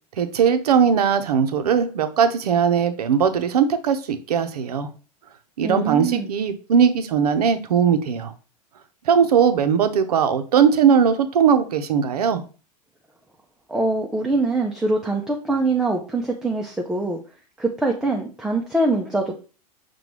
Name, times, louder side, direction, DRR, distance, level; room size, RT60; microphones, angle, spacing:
voice 1, 0.2-4.9 5.6-8.3 9.1-12.4, right 7 dB, 70° right, 10 dB, 0.6 m, -19 dB
voice 2, 5.6-6.3 13.7-17.2 17.6-19.3, right 2 dB, 5° right, 1 dB, 0.4 m, -23 dB
5.8 x 2.2 x 3.0 m, 0.35 s
figure-of-eight pair, 95°, 20 cm